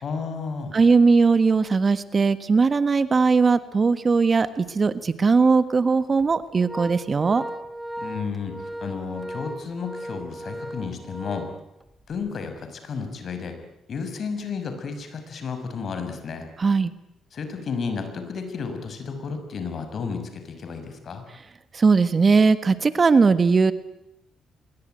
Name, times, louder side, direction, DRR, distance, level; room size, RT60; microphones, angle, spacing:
voice 1, 0.0-0.7 8.0-11.5 12.1-13.5 13.9-16.5 17.3-21.2, left 5 dB, 55° left, 7 dB, 6.1 m, -32 dB
voice 2, 0.7-7.4 16.6-16.9 21.7-23.7, right 4 dB, 35° right, 13 dB, 1.5 m, -19 dB
Organ, 4.5-4.6 5.0-5.1 6.0-12.3, equal, 5° right, 2.4 m, -37 dB
25.5 x 22.0 x 9.2 m, 0.84 s
cardioid pair, 90°, 0 cm